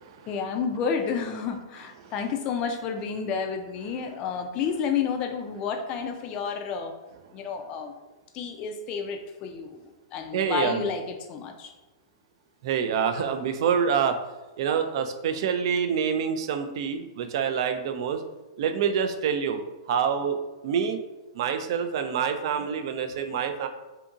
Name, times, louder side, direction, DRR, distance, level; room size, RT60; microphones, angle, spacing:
voice 1, 0.3-6.9 7.3-7.9 8.3-11.7, left 6 dB, 30° left, 5 dB, 0.3 m, -30 dB
voice 2, 10.3-10.8 12.6-14.2 14.6-18.2 18.6-19.6 19.9-21.0 21.3-23.7, right 7 dB, 55° right, 7 dB, 0.3 m, -26 dB
2.7 x 2.6 x 2.4 m, 1.1 s
hypercardioid pair, 140°, 3 cm